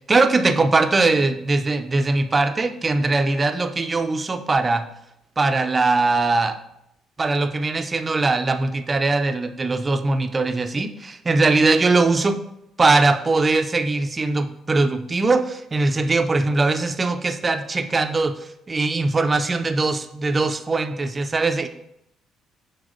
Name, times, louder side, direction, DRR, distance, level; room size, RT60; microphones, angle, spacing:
voice 1, 0.0-4.9 5.4-6.6 7.2-12.4 12.8-18.3 18.7-21.7, right 3 dB, 25° right, 7 dB, 0.6 m, -21 dB
6.1 x 4.6 x 5.0 m, 0.80 s
cardioid pair, 95°, 0 cm